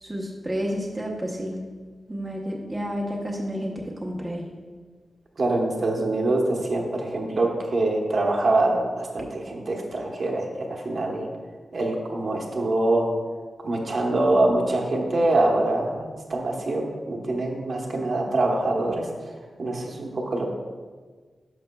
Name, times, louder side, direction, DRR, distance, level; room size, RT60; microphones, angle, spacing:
voice 1, 0.0-1.6 2.1-4.5, equal, 15° right, -2 dB, 0.8 m, -30 dB
voice 2, 5.4-11.3 11.7-13.1 13.6-19.1 19.6-20.5, right 2 dB, 50° right, 0 dB, 1.0 m, -24 dB
11.0 x 5.9 x 2.2 m, 1.5 s
wide cardioid pair, 145°, 0 cm